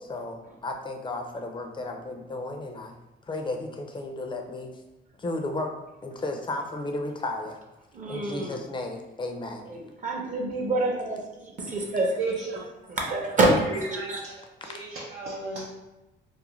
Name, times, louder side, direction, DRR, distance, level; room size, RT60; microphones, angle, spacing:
voice 1, 0.1-2.9 3.3-4.7 5.2-5.7 6.0-7.6 8.1-9.7, left 2 dB, 25° left, 3 dB, 0.5 m, -33 dB
voice 2, 7.9-8.6 9.6-12.2 12.5-12.6 12.9-14.2, right 2 dB, 40° right, 0 dB, 0.7 m, -27 dB
voice 3, 12.2-12.6 13.1-13.2 13.7-14.3 14.6-15.7, right 3 dB, 80° right, -5 dB, 0.5 m, -34 dB
2.5 x 2.1 x 3.0 m, 1.0 s
cardioid pair, 90°, 20 cm